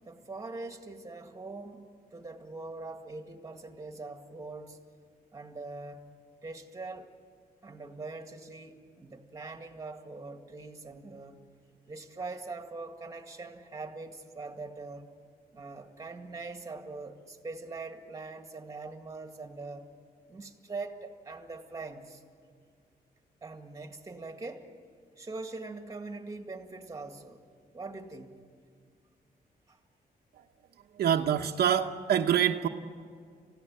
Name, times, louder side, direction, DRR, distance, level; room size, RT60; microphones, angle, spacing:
voice 1, 0.1-4.8 5.3-6.0 6.4-7.1 7.6-11.4 11.9-15.1 15.5-19.9 20.3-22.2 23.4-24.7 25.2-27.4 27.7-28.5 29.7-29.8, right 3 dB, 20° right, 5 dB, 2.0 m, -42 dB
voice 2, 30.9-32.7, right 9 dB, 80° right, 4 dB, 1.1 m, -26 dB
29.5 x 16.0 x 8.9 m, 2.1 s
wide cardioid pair, 150°, 16 cm